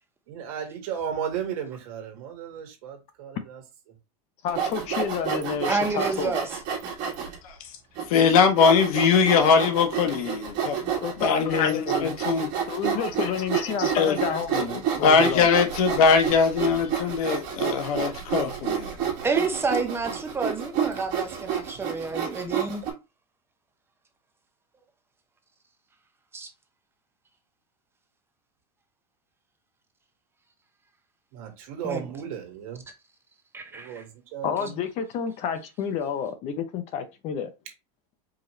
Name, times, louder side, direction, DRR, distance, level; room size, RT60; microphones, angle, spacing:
voice 1, 0.3-3.4 31.3-32.8 33.7-34.5, right 8 dB, 65° right, 1.6 m, -34 dB
voice 2, 4.4-6.3 11.0-12.2 12.7-15.5 34.4-37.5, left 7 dB, 35° left, 0.6 m, -30 dB
Sawing, 4.5-7.4 8.0-8.1 8.6-22.9, right 8 dB, 45° right, 1.6 m, -29 dB
voice 3, 5.7-6.4 19.2-22.8 26.3-26.5 31.8-32.1 33.5-34.0, right 3 dB, 10° right, 0.6 m, -29 dB
voice 4, 8.1-10.9 11.2-12.5 13.8-14.2 15.0-18.9, left 6 dB, 70° left, 1.1 m, -21 dB
4.8 x 2.9 x 3.1 m
supercardioid pair, 155°, 19 cm